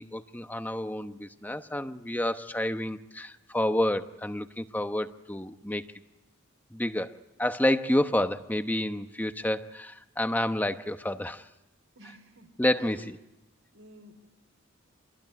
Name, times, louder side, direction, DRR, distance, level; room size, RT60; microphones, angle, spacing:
voice 1, 0.0-5.8 6.7-11.4 12.6-13.2, left 1 dB, 10° left, 9 dB, 0.9 m, -29 dB
voice 2, 12.0-12.5 12.7-13.1 13.7-14.1, right 2 dB, 85° right, 6 dB, 3.9 m, -49 dB
27.5 x 21.5 x 9.6 m, 0.96 s
head